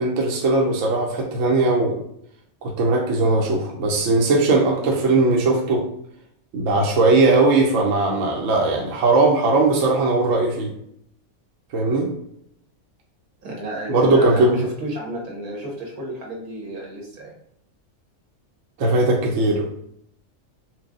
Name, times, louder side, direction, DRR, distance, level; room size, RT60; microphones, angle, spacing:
voice 1, 0.0-2.0 2.6-5.8 6.5-10.7 11.7-12.1 13.9-14.6 18.8-19.7, right 2 dB, 65° right, -1 dB, 1.0 m, -19 dB
voice 2, 13.4-17.3, right 1 dB, 85° right, -2 dB, 1.6 m, -31 dB
4.6 x 2.1 x 3.6 m, 0.72 s
omnidirectional pair, 1.5 m